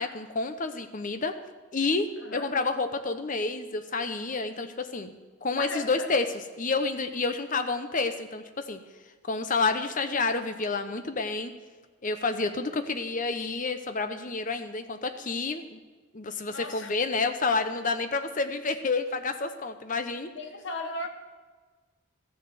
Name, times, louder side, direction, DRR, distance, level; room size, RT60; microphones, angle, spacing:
voice 1, 0.0-1.4 1.7-6.3 6.6-8.8 9.2-11.5 12.0-15.8 16.1-20.3, left 3 dB, 40° left, 8 dB, 0.8 m, -29 dB
voice 2, 2.2-2.5 5.6-6.1 16.5-16.9 20.3-21.1, left 2 dB, 60° left, 5 dB, 1.3 m, -37 dB
14.0 x 6.8 x 7.8 m, 1.4 s
head